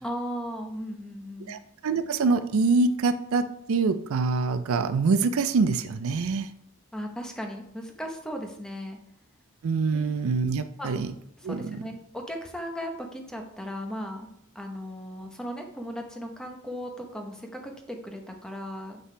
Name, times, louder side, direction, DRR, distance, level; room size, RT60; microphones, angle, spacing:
voice 1, 0.0-1.6 6.9-9.0 9.9-10.1 10.8-10.9 11.4-14.3 14.5-19.0, equal, 5° left, 2 dB, 1.0 m, -36 dB
voice 2, 1.5-6.5 9.6-11.1 11.4-11.8, right 4 dB, 75° right, 11 dB, 0.4 m, -25 dB
7.6 x 5.6 x 3.3 m, 0.71 s
head